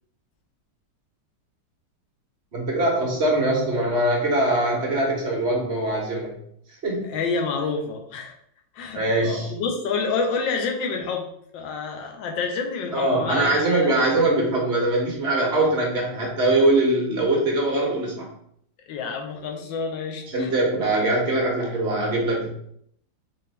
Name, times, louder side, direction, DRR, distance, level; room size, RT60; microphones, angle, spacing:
voice 1, 2.5-6.3 6.8-7.1 8.9-9.5 12.9-18.3 20.3-22.5, right 2 dB, 45° right, -2 dB, 1.1 m, -22 dB
voice 2, 7.1-8.3 8.7-11.3 11.5-13.9 18.9-20.5, left 4 dB, 85° left, 2 dB, 1.5 m, -28 dB
4.2 x 3.7 x 3.2 m, 0.69 s
omnidirectional pair, 2.0 m